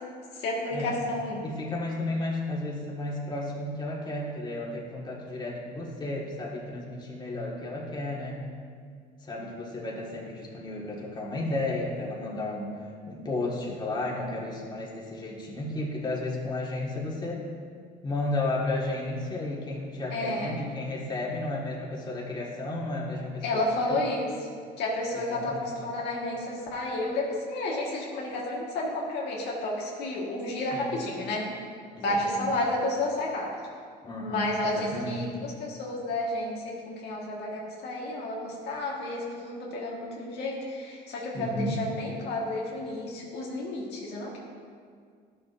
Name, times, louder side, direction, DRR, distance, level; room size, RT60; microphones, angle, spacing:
voice 1, 0.3-1.4 20.1-20.5 23.4-24.5 24.8-31.5 32.0-33.5 34.2-44.4, left 2 dB, 80° left, -3 dB, 1.6 m, -31 dB
voice 2, 1.4-8.4 9.2-12.7 13.1-17.4 18.0-24.0 25.1-25.7 30.7-30.9 31.9-32.5 34.0-35.3 41.3-41.8, left 2 dB, 25° left, -5 dB, 1.7 m, -33 dB
12.0 x 6.8 x 2.6 m, 2.1 s
cardioid pair, 110°, 17 cm